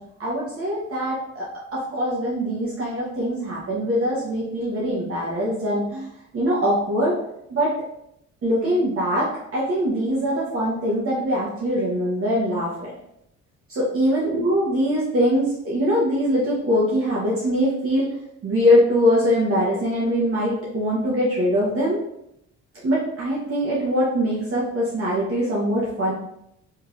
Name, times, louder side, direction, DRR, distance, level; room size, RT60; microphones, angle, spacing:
voice 1, 0.2-6.1 6.3-7.2 7.5-7.7 8.4-12.9 13.7-18.1 18.4-22.0 22.8-26.1, equal, 45° right, -6 dB, 0.9 m, -22 dB
3.1 x 2.8 x 2.4 m, 0.78 s
cardioid pair, 90°, 30 cm